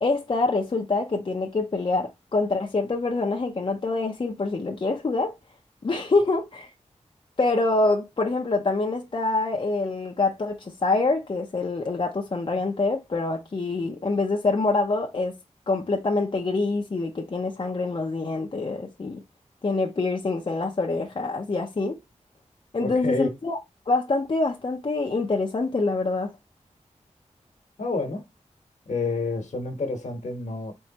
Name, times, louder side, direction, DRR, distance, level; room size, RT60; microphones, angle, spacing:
voice 1, 0.0-5.4 5.8-6.7 7.4-15.4 15.7-19.2 19.6-22.0 22.7-23.6 23.9-26.3, left 3 dB, 45° left, 0.6 m, -25 dB
voice 2, 22.8-23.3 27.8-28.2 28.9-30.7, left 3 dB, 75° left, 1.2 m, -28 dB
4.5 x 3.2 x 2.9 m
wide cardioid pair, 65°, 12 cm